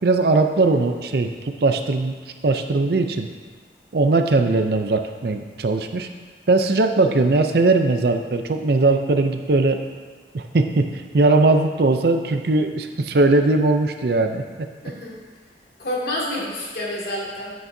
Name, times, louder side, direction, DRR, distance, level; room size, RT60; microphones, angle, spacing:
voice 1, 0.0-2.1 2.4-3.3 3.9-6.1 6.5-9.8 10.3-10.9 11.1-14.7, right 3 dB, 60° right, 6 dB, 0.5 m, -19 dB
voice 2, 15.8-17.5, left 1 dB, 60° left, -4 dB, 2.0 m, -28 dB
9.2 x 8.6 x 2.7 m, 1.5 s
head